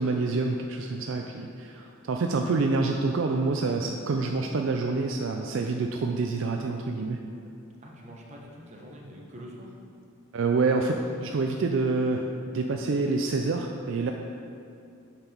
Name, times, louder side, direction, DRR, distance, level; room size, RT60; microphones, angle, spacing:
voice 1, 0.0-7.2 10.3-12.2 12.5-14.1, right 3 dB, 65° right, 3 dB, 0.4 m, -27 dB
voice 2, 7.6-9.7, equal, 35° right, -2 dB, 1.2 m, -45 dB
8.7 x 5.9 x 4.5 m, 2.5 s
head